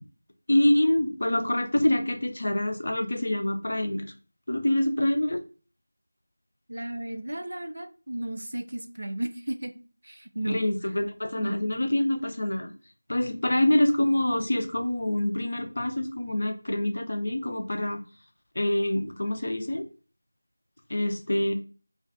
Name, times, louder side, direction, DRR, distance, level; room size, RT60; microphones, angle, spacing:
voice 1, 0.5-4.0 4.5-5.4 10.5-12.7 13.1-18.0 18.6-19.9 20.9-21.5, left 1 dB, 55° left, 5 dB, 0.4 m, -26 dB
voice 2, 6.7-9.7 10.0-10.6 11.4-11.6, right 1 dB, 60° right, 8 dB, 0.3 m, -34 dB
2.4 x 2.2 x 2.4 m, 0.36 s
figure-of-eight pair, 170°, 0 cm